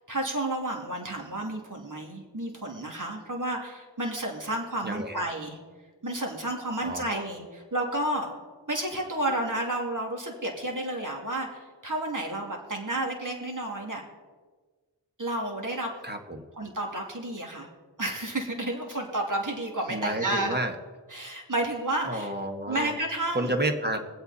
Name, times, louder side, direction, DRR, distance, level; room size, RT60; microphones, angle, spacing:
voice 1, 0.1-5.6 6.0-8.3 8.7-14.0 15.2-15.9 16.5-17.7 18.0-20.6 21.1-22.3 22.7-23.5, right 1 dB, 40° right, 1 dB, 2.8 m, -31 dB
voice 2, 4.8-5.2 6.8-7.3 16.0-16.4 19.9-20.7 22.0-22.9 23.3-24.0, right 1 dB, 20° right, 4 dB, 1.7 m, -30 dB
22.5 x 8.1 x 4.3 m, 1.4 s
cardioid pair, 45°, 46 cm